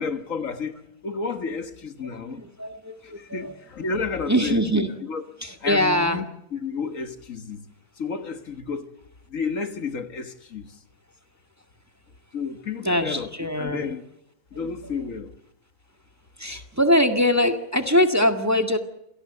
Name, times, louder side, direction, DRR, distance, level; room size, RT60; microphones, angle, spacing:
voice 1, 0.0-2.4 3.0-4.6 5.1-5.2 5.6-6.2 6.5-7.6 8.0-8.9 9.3-10.7 12.3-13.3 13.6-14.0 14.5-15.3, left 5 dB, 60° left, 1.8 m, -31 dB
voice 2, 2.0-4.9 5.4-6.2 12.8-13.9 14.5-15.0 16.4-18.8, equal, 10° right, 1.8 m, -23 dB
27.5 x 17.5 x 8.0 m
omnidirectional pair, 1.6 m